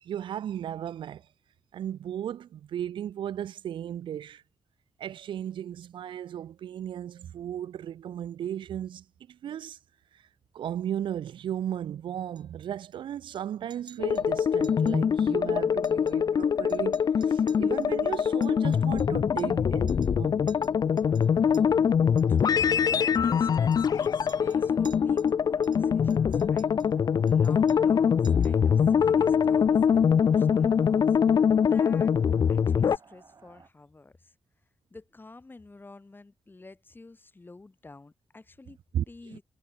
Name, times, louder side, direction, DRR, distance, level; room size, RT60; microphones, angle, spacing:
voice 1, 0.0-1.3 1.7-4.4 5.0-9.8 10.1-10.2 10.5-20.4 38.9-39.0 39.3-39.4, right 10 dB, 85° right, 0.4 m, -35 dB
Chink clink, 12.4-13.0 13.3-13.4 13.7-14.3 14.6-15.0 15.2-15.3 15.7-16.4 16.7-19.6 19.9-20.2 20.5-21.6 22.2-22.5 23.1-25.3 25.6-26.9 27.3-28.0 28.2-28.6, right 7 dB, 65° right, 2.3 m, -55 dB
sound 1, 14.0-33.0, left 7 dB, 50° left, 0.4 m, -23 dB
sound 2, 20.7-33.7, right 5 dB, 45° right, 3.3 m, -55 dB
voice 2, 22.2-32.2 32.5-34.3 34.9-38.8 39.1-39.4, left 3 dB, 25° left, 7.8 m, -49 dB
wide cardioid pair, 110°, 8 cm